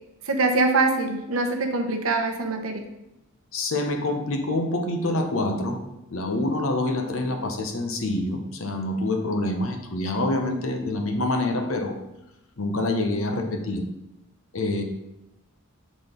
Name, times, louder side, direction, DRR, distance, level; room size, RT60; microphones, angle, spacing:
voice 1, 0.3-2.8, right 3 dB, 75° right, 3 dB, 0.8 m, -23 dB
voice 2, 3.5-5.8 6.1-11.9 12.6-13.8 14.5-14.8, left 2 dB, 65° left, 4 dB, 0.9 m, -26 dB
6.2 x 3.9 x 5.1 m, 0.92 s
head